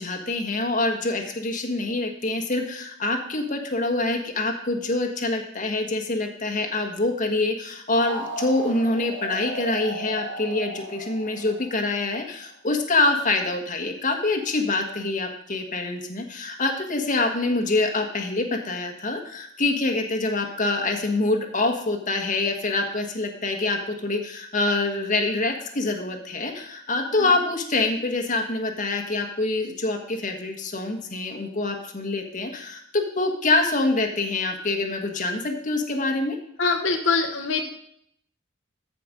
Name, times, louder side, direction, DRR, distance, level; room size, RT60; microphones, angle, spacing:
voice 1, 0.0-36.4, left 2 dB, 45° left, 3 dB, 1.4 m, -25 dB
sound 1, 7.9-12.4, right 1 dB, 90° right, 2.3 m, -35 dB
voice 2, 36.6-37.6, left 4 dB, 80° left, 4 dB, 1.2 m, -24 dB
14.5 x 5.2 x 5.2 m, 0.69 s
head